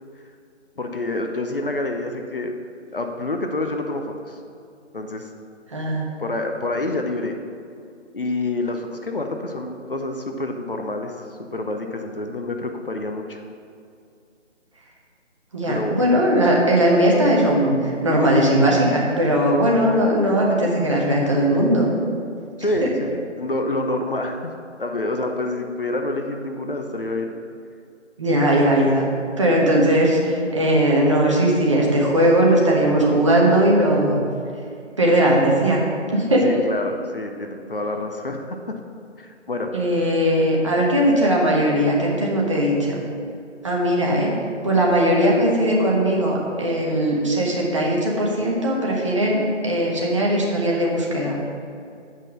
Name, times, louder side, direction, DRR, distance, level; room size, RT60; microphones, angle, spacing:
voice 1, 0.8-2.5 2.9-4.4 4.9-5.3 6.2-7.4 8.1-11.1 11.4-13.4 15.7-16.0 22.6-24.5 24.8-27.3 36.4-38.7 39.2-39.7, left 2 dB, 50° left, 4 dB, 0.7 m, -27 dB
voice 2, 5.7-6.1 15.5-21.9 22.8-22.9 28.2-29.1 29.4-34.2 35.0-35.8 36.1-36.5 39.7-43.0 43.6-44.3 44.6-51.4, right 1 dB, 25° right, -3 dB, 1.0 m, -19 dB
7.5 x 5.6 x 6.3 m, 2.4 s
figure-of-eight pair, 155°, 36 cm